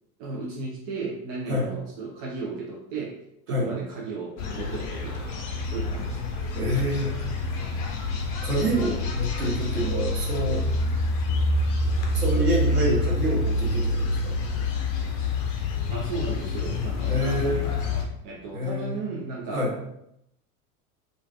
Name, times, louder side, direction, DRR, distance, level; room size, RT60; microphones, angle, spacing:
voice 1, 0.2-3.2 3.5-5.4 5.6-6.2 9.4-10.1 15.9-19.7, right 3 dB, 45° right, -3 dB, 0.6 m, -35 dB
sound 1, 4.4-18.0, left 2 dB, 35° left, 0.6 m, -27 dB
voice 2, 6.5-7.1 8.4-10.6 12.1-14.3 17.1-17.6 18.5-18.9 19.5-19.7, equal, 80° right, -3 dB, 1.0 m, -27 dB
3.1 x 2.5 x 2.3 m, 0.79 s
figure-of-eight pair, 80°, 45 cm